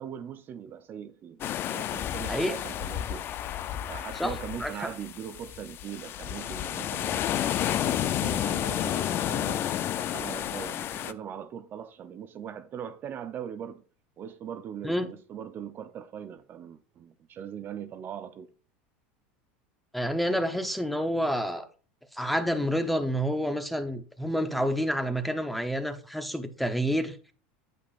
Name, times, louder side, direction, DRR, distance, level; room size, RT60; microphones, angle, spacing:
voice 1, 0.0-3.3 3.9-7.3 7.7-9.7 9.9-13.8 14.2-18.5, right 9 dB, 40° right, 0.6 m, -40 dB
sound 1, 1.4-11.1, left 11 dB, 40° left, 0.5 m, -31 dB
voice 2, 19.9-21.7 22.1-27.2, equal, ahead, 0.9 m, -28 dB
9.4 x 8.6 x 2.5 m
supercardioid pair, 115°, 6 cm